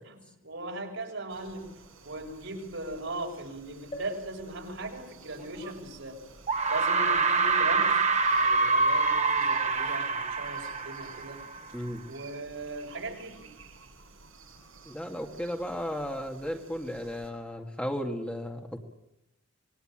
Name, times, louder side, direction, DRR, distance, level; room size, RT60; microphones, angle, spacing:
voice 1, 0.1-1.7 2.0-6.2 6.7-11.4 12.1-13.4, right 2 dB, 65° right, 2 dB, 6.2 m, -39 dB
sound 1, 1.3-17.3, right 3 dB, 85° right, 7.9 m, -54 dB
sound 2, 3.9-7.6 8.2-8.3 8.5-8.6, equal, 30° left, 6.2 m, -50 dB
sound 3, 5.6-5.7 6.5-11.7, right 4 dB, 35° right, 1.0 m, -26 dB
voice 2, 11.7-12.0 14.9-18.8, equal, 5° left, 3 dB, 2.1 m, -34 dB
26.0 x 21.5 x 8.9 m, 0.89 s
head